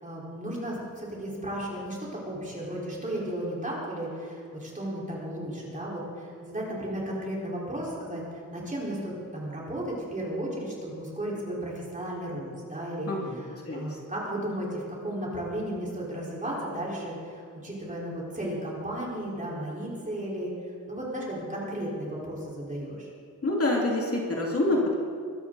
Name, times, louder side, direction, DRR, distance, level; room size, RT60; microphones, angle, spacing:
voice 1, 0.0-8.2 8.5-20.5 20.8-23.1, right 1 dB, 25° right, -5 dB, 4.4 m, -34 dB
voice 2, 13.1-13.4 13.7-14.0 23.4-24.9, left 2 dB, 45° left, -2 dB, 2.4 m, -26 dB
22.5 x 13.5 x 4.0 m, 2.3 s
wide cardioid pair, 150°, 33 cm